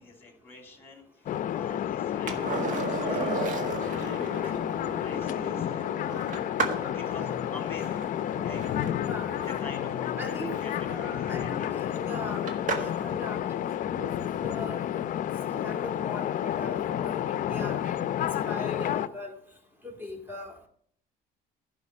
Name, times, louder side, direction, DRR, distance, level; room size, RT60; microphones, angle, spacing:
voice 1, 0.0-6.6 6.9-8.0 8.4-8.6 9.6-11.8, left 3 dB, 10° left, 3 dB, 2.8 m, -47 dB
sound 1, 1.3-19.1, left 10 dB, 50° left, 0.6 m, -30 dB
Skateboard, 2.3-13.1 15.7-15.8, right 4 dB, 50° right, 1.6 m, -36 dB
voice 2, 9.0-9.4 10.2-10.5 10.9-12.5 12.8-14.8 15.5-18.1 18.4-19.3 19.8-20.7, left 2 dB, 10° right, 3 dB, 2.3 m, -40 dB
11.0 x 5.3 x 5.9 m, 0.63 s
cardioid pair, 110°, 17 cm